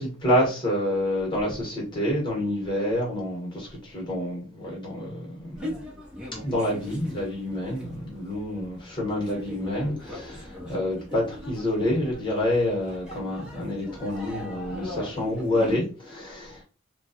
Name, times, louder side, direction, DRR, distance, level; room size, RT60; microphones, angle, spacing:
voice 1, 0.0-5.5 6.4-16.6, left 1 dB, 25° left, 1.3 m, -28 dB
sound 1, 5.6-15.8, left 1 dB, 5° right, 0.8 m, -40 dB
3.0 x 2.3 x 2.8 m
head